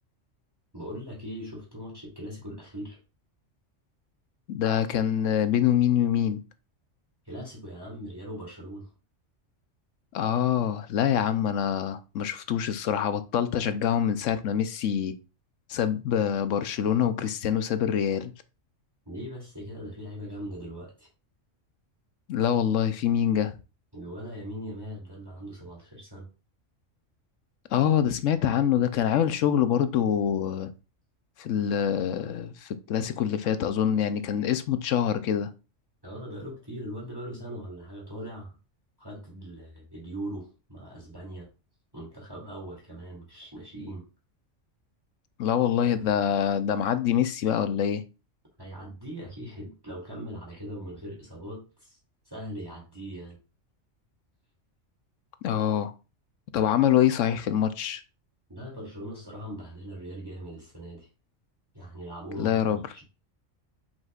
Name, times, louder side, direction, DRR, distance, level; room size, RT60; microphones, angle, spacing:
voice 1, 0.7-3.0 7.2-8.9 19.1-21.1 23.9-26.3 36.0-38.6 39.0-41.5 41.9-44.0 48.6-52.0 52.2-53.4 58.5-61.1 61.7-63.0, equal, 20° right, 2.7 m, -40 dB
voice 2, 4.5-6.4 10.1-15.1 15.7-18.3 22.3-23.5 27.7-30.7 31.4-35.5 45.4-48.0 55.4-55.9 56.5-58.0 62.4-62.8, left 9 dB, 80° left, 1.0 m, -25 dB
7.9 x 5.7 x 2.4 m
omnidirectional pair, 1.3 m